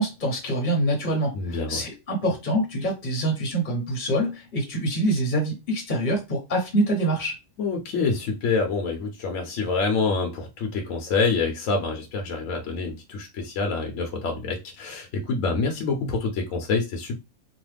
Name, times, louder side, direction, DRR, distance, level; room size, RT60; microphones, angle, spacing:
voice 1, 0.0-7.4, right 1 dB, 40° left, 0.9 m, -25 dB
voice 2, 1.3-1.9 7.6-17.2, left 4 dB, 70° left, 1.0 m, -26 dB
3.1 x 2.2 x 3.3 m
omnidirectional pair, 1.5 m